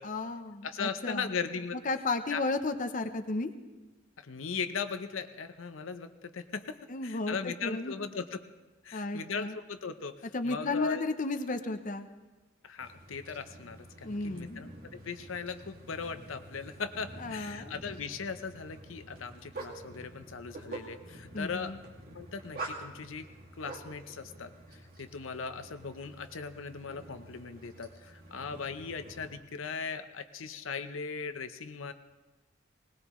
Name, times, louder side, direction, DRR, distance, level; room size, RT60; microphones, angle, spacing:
voice 1, 0.0-1.3 1.8-3.5 6.9-7.9 8.9-9.6 10.3-12.1 14.0-14.7 17.2-17.7 21.3-21.8, left 3 dB, 40° left, 7 dB, 0.7 m, -33 dB
voice 2, 0.6-1.8 2.3-2.4 4.2-6.8 7.0-8.4 8.8-10.2 10.4-11.0 12.6-21.8 22.1-23.3 23.6-31.9, left 5 dB, 80° left, 9 dB, 0.7 m, -38 dB
sound 1, 12.8-29.4, right 2 dB, 45° right, 2.2 m, -48 dB
20.5 x 18.5 x 3.1 m, 1.2 s
head